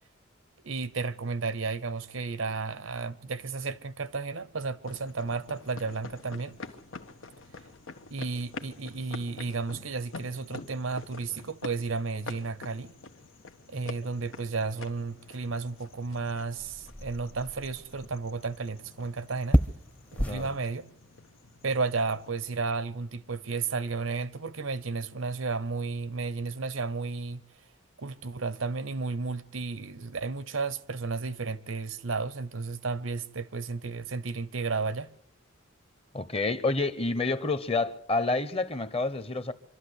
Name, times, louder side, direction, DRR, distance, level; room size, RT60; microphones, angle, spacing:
voice 1, 0.6-6.5 8.1-12.9 13.7-19.6 20.2-20.9 21.6-27.4 28.0-35.1, right 4 dB, 85° right, 0.9 m, -33 dB
sound 1, 4.8-22.3, left 3 dB, 90° left, 1.3 m, -47 dB
sound 2, 14.1-20.6, equal, 5° left, 0.7 m, -34 dB
voice 2, 36.1-39.5, left 3 dB, 30° left, 1.0 m, -28 dB
25.0 x 12.5 x 8.2 m
head